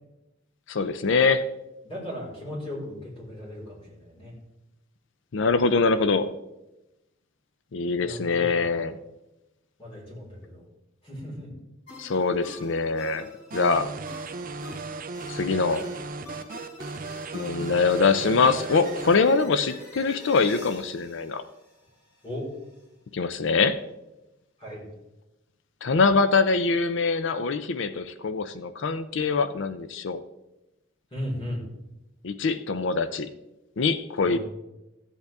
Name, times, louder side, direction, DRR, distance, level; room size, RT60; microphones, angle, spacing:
voice 1, 0.7-1.4 5.3-6.3 7.7-8.9 12.0-13.9 15.3-15.9 17.3-21.4 23.1-23.8 25.8-30.2 32.2-33.3 33.8-34.4, left 4 dB, 65° left, 12 dB, 0.5 m, -23 dB
voice 2, 1.8-4.3 8.0-8.9 9.8-10.6 11.0-11.5 17.9-18.1 22.2-22.5 24.6-24.9 31.1-31.7 34.2-34.4, equal, 30° left, -5 dB, 4.6 m, -36 dB
sound 1, 11.9-22.3, left 1 dB, 85° left, 4.5 m, -45 dB
sound 2, 13.5-19.2, right 3 dB, 45° right, 0.6 m, -36 dB
14.5 x 8.2 x 3.5 m, 0.95 s
head